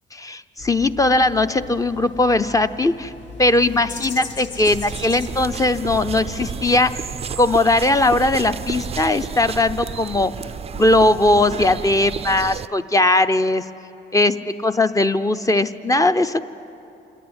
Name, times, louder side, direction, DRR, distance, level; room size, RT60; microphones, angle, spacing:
voice 1, 0.2-3.1 3.4-6.9 7.4-10.3 10.7-13.6 14.1-14.3 14.6-16.4, left 2 dB, 15° left, 11 dB, 0.6 m, -19 dB
sound 1, 0.6-7.1, left 3 dB, 65° left, 1.4 m, -38 dB
sound 2, 4.7-12.7, right 7 dB, 30° right, 0.4 m, -32 dB
27.0 x 10.0 x 9.7 m, 2.8 s
cardioid pair, 90°, 20 cm